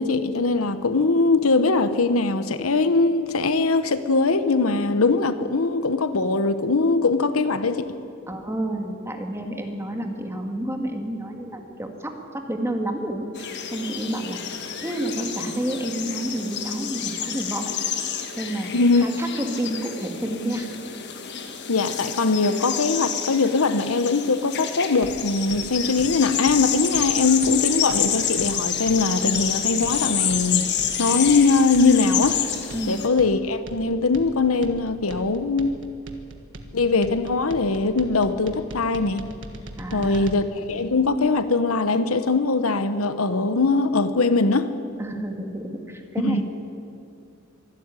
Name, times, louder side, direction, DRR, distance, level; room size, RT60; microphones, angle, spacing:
voice 1, 0.0-7.9 18.7-19.0 21.7-30.7 31.0-32.4 32.9-35.7 36.7-39.2 39.9-44.7 46.2-46.4, left 3 dB, 85° left, 11 dB, 1.1 m, -21 dB
voice 2, 8.3-17.7 18.4-20.7 32.7-32.9 39.8-40.3 45.0-46.4, right 1 dB, 10° right, 3 dB, 2.1 m, -30 dB
sound 1, 13.4-33.1, left 8 dB, 55° left, 1.6 m, -28 dB
sound 2, 25.0-40.4, right 1 dB, 60° right, 1.7 m, -41 dB
25.0 x 12.5 x 9.8 m, 2.6 s
head